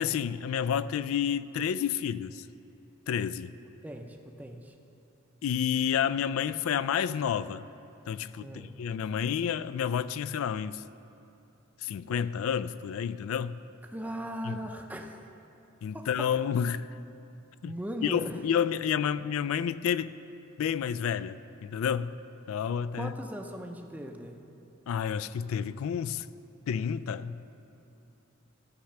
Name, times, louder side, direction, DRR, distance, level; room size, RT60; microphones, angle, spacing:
voice 1, 0.0-2.5 3.1-3.5 5.4-7.6 8.1-10.8 11.8-13.6 14.4-14.6 15.8-16.9 17.6-17.7 18.0-20.2 20.6-22.2 22.5-23.1 24.9-26.3 26.7-27.4, left 8 dB, 80° left, 0.3 m, -30 dB
voice 2, 3.8-4.7 8.4-8.7 13.9-15.2 15.9-16.1 17.6-18.4 23.0-24.4, equal, 10° right, 0.5 m, -38 dB
13.0 x 5.9 x 6.5 m
head